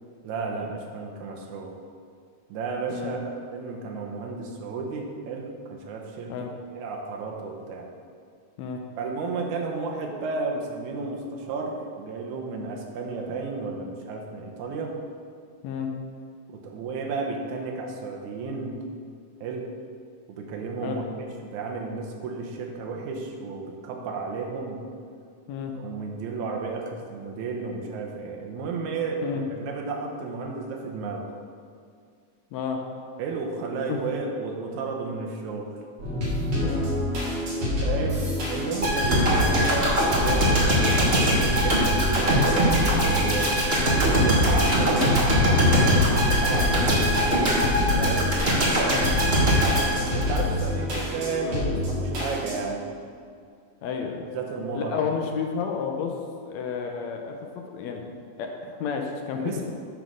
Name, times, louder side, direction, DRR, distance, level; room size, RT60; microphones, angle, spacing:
voice 1, 0.2-1.7 2.5-6.3 6.7-7.9 9.0-14.9 16.5-18.8 19.4-19.7 20.3-24.8 25.8-31.3 33.2-35.7 37.8-44.9 45.6-47.6 48.0-48.3 50.1-52.8 54.3-55.0 59.3-59.6, right 4 dB, 80° right, 1 dB, 2.3 m, -33 dB
voice 2, 32.5-32.8 33.9-34.1 36.6-37.0 48.9-49.1 53.8-54.2 54.7-56.2 56.4-59.7, left 6 dB, 75° left, 3 dB, 1.8 m, -31 dB
sound 1, 36.0-52.6, left 2 dB, 65° right, 3.3 m, -28 dB
sound 2, 38.8-50.8 51.1-51.3, equal, 35° right, 0.9 m, -22 dB
9.2 x 4.1 x 6.3 m, 2.2 s
omnidirectional pair, 3.4 m